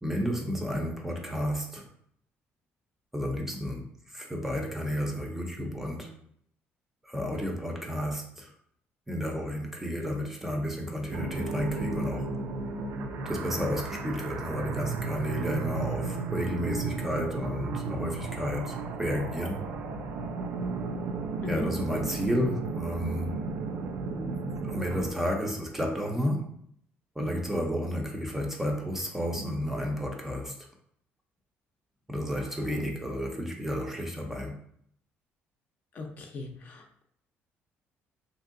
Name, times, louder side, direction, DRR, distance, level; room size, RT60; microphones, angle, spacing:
voice 1, 0.0-1.9 3.1-6.1 7.0-8.5 9.1-12.3 13.2-19.6 21.5-23.4 24.1-24.4 24.6-26.5 27.2-30.6 32.1-34.6, equal, 5° right, 1 dB, 0.5 m, -32 dB
sound 1, 11.1-25.1, right 3 dB, 65° right, 0.4 m, -34 dB
voice 2, 35.9-37.0, left 3 dB, 45° left, 3 dB, 0.5 m, -38 dB
3.1 x 2.6 x 2.5 m, 0.66 s
cardioid pair, 130°, 4 cm